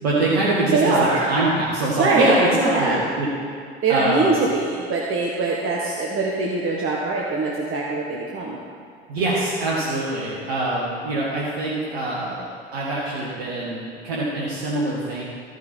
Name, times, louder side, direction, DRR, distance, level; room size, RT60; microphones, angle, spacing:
voice 1, 0.0-3.3 3.9-4.3 9.1-12.4 12.7-15.2, right 2 dB, 75° right, -7 dB, 1.9 m, -23 dB
voice 2, 0.7-1.3 2.0-2.4 2.7-3.0 3.8-8.6, right 3 dB, 40° right, -3 dB, 1.5 m, -22 dB
14.5 x 5.9 x 4.5 m, 2.2 s
hypercardioid pair, 65°, 32 cm